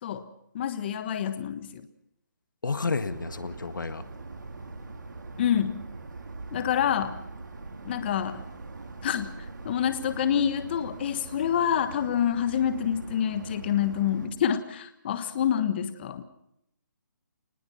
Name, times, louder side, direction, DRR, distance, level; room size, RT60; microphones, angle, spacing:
voice 1, 0.5-1.8 5.4-5.8 6.5-7.2 7.8-8.4 9.0-9.3 9.6-16.2, left 9 dB, 35° left, 11 dB, 1.3 m, -27 dB
voice 2, 2.6-4.0, left 4 dB, 80° left, 11 dB, 1.8 m, -30 dB
sound 1, 3.1-14.3, right 3 dB, 75° right, 3.9 m, -42 dB
24.5 x 20.0 x 5.7 m, 0.78 s
hypercardioid pair, 160°, 10 cm